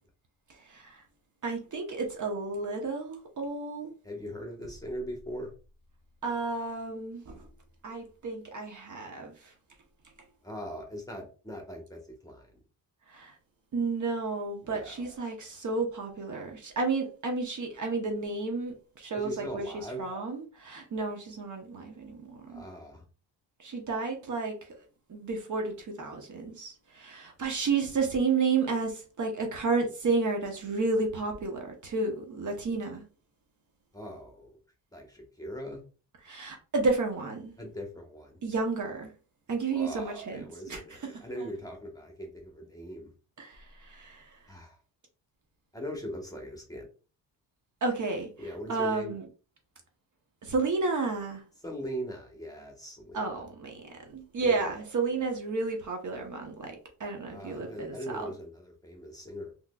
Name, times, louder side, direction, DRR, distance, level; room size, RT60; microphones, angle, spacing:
voice 1, 0.5-1.0 1.4-3.9 6.2-7.5 7.8-9.5 13.1-13.4 13.7-22.6 23.6-33.0 36.2-37.5 38.4-39.1 39.5-41.5 43.4-44.4 47.8-49.3 50.4-51.4 53.1-58.3, right 4 dB, 40° right, 0.9 m, -32 dB
voice 2, 4.0-5.5 10.4-12.5 14.6-15.0 19.2-20.1 22.5-23.0 33.9-34.6 34.9-35.8 37.6-38.4 39.7-43.1 44.5-44.8 45.7-46.9 48.4-49.1 51.6-53.2 54.4-54.6 57.3-59.5, equal, 10° left, 1.1 m, -40 dB
3.5 x 3.1 x 2.3 m
cardioid pair, 80°, 44 cm